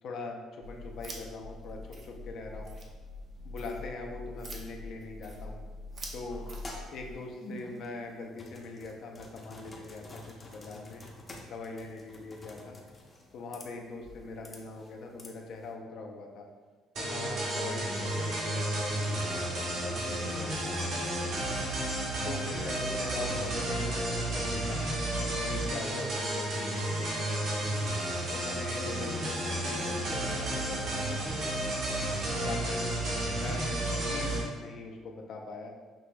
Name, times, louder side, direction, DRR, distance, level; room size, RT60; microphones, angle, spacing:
voice 1, 0.0-2.7 3.4-5.6 6.1-6.4 6.9-11.0 11.5-12.8 13.3-16.5 16.9-21.3 22.2-24.8 25.5-27.7 28.3-31.7 32.3-32.9 33.3-35.7, left 3 dB, 60° left, 2 dB, 0.6 m, -42 dB
sound 1, 0.6-7.1, left 1 dB, 45° right, 0.7 m, -44 dB
sound 2, 6.3-15.7, left 1 dB, 20° left, 0.6 m, -49 dB
sound 3, 16.9-34.4, right 1 dB, 70° right, 1.3 m, -32 dB
6.1 x 3.0 x 2.2 m, 1.4 s
cardioid pair, 120°, 0 cm